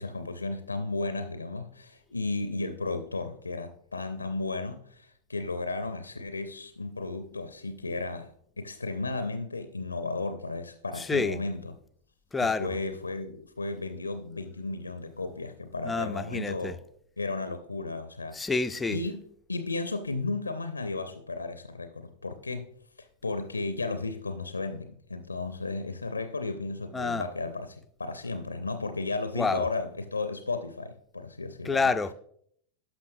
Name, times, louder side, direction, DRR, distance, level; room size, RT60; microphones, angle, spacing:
voice 1, 0.0-8.3 8.6-11.8 12.4-16.8 17.2-18.5 18.9-19.2 19.5-22.7 23.0-31.9, left 3 dB, 80° left, 0.4 m, -34 dB
voice 2, 11.0-11.4 12.3-12.8 15.8-16.7 18.3-19.0 26.9-27.2 29.3-29.7 31.6-32.1, left 4 dB, 10° left, 0.4 m, -28 dB
12.0 x 5.8 x 2.6 m
figure-of-eight pair, 90°, 0 cm